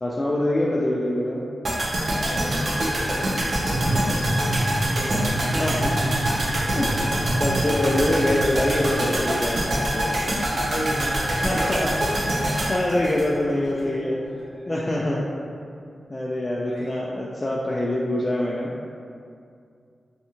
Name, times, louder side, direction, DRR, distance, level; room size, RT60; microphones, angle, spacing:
voice 1, 0.0-1.4 3.9-4.0 5.5-5.9 6.7-6.9 7.4-10.4 11.4-11.9 12.7-14.2 14.7-15.2 16.1-18.7, left 1 dB, 35° left, -5 dB, 0.3 m, -25 dB
sound 1, 1.6-13.8 14.1-14.2, right 1 dB, 65° right, 0.5 m, -25 dB
voice 2, 2.2-6.3 7.0-7.1 10.5-12.7 13.8-14.7 16.5-17.0, equal, 10° left, -11 dB, 1.1 m, -35 dB
sound 2, 3.6-9.3, right 1 dB, 35° right, 1.1 m, -28 dB
2.6 x 2.4 x 2.7 m, 2.4 s
cardioid pair, 45°, 0 cm